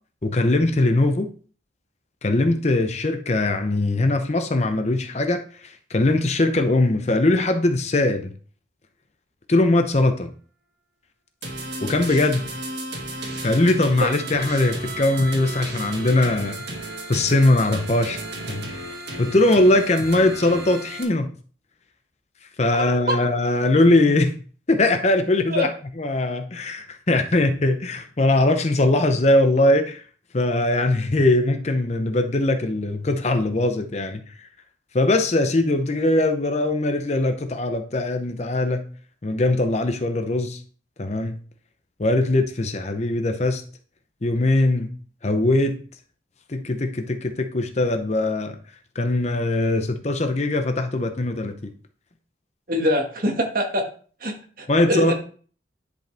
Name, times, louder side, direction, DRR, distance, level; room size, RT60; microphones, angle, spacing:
voice 1, 0.2-1.3 2.2-8.3 9.5-10.3 11.8-12.4 13.4-18.2 18.5-18.9 19.2-21.3 22.6-24.4 24.7-25.7 26.0-30.0 30.3-34.5 34.9-38.8 39.2-40.6 41.0-41.4 42.0-43.6 44.2-44.9 45.2-45.7 46.5-48.6 48.9-51.7 54.7-55.1, left 2 dB, 35° left, 7 dB, 0.7 m, -21 dB
sound 1, 11.4-21.0, right 2 dB, 65° right, 1.8 m, -33 dB
voice 2, 22.7-23.2 25.5-25.7 52.7-53.8 54.2-55.1, equal, 45° right, 3 dB, 1.6 m, -24 dB
10.5 x 5.2 x 3.4 m, 0.43 s
head